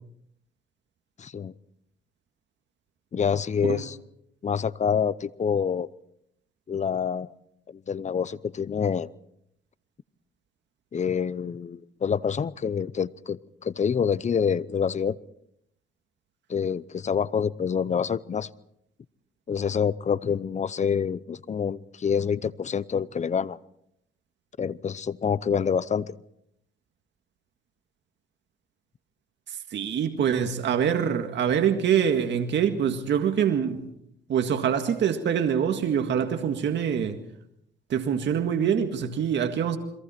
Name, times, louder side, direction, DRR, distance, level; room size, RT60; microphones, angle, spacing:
voice 1, 1.2-1.5 3.1-4.0 4.4-5.9 6.7-7.3 7.7-9.1 10.9-15.2 16.5-18.5 19.5-23.6 24.6-26.2, left 7 dB, 35° left, 0.7 m, -27 dB
voice 2, 29.5-33.8 34.3-37.2 37.9-39.8, right 8 dB, 65° right, 1.9 m, -25 dB
29.5 x 22.5 x 4.4 m
cardioid pair, 90°, 20 cm